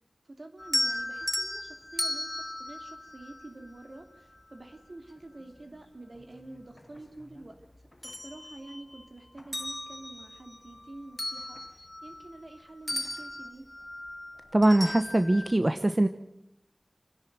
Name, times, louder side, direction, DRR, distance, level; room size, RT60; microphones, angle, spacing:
voice 1, 0.3-2.3 2.6-7.6 8.0-13.7, right 2 dB, 60° right, 5 dB, 2.9 m, -47 dB
sound 1, 0.6-3.9 5.6-5.7 6.2-7.4 7.8-9.0 9.4-12.6 12.9-15.5, left 1 dB, 30° left, 0.8 m, -36 dB
voice 2, 14.5-16.1, right 1 dB, 35° right, 9 dB, 1.0 m, -22 dB
29.0 x 10.5 x 9.4 m, 0.84 s
wide cardioid pair, 45°, 0 cm